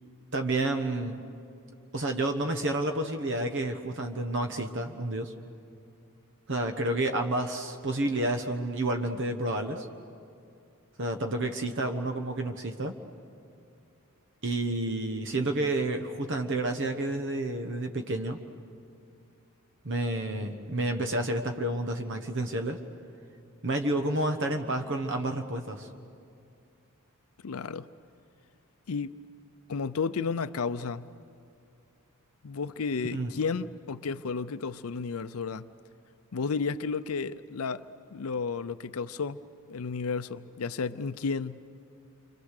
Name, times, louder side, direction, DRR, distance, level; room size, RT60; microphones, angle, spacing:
voice 1, 0.3-1.2 1.9-5.3 6.5-9.9 11.0-12.9 14.4-18.4 19.8-22.8 23.6-25.9 33.1-33.3, right 2 dB, 55° right, 5 dB, 1.1 m, -30 dB
voice 2, 27.4-27.9 28.9-29.2 29.7-31.1 32.4-35.7 36.3-37.8 38.1-39.4 39.7-41.6, left 5 dB, 75° left, 12 dB, 0.6 m, -32 dB
29.0 x 25.5 x 6.6 m, 2.4 s
head